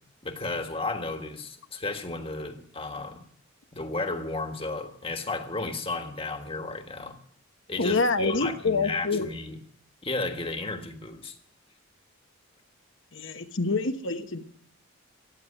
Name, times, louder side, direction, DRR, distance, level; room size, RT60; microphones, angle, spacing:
voice 1, 0.2-3.2 3.7-7.2 7.7-9.6 10.0-11.4, left 3 dB, 25° left, 1.5 m, -33 dB
voice 2, 7.8-9.3 13.1-14.4, left 3 dB, 60° left, 1.1 m, -27 dB
14.5 x 9.5 x 9.8 m
head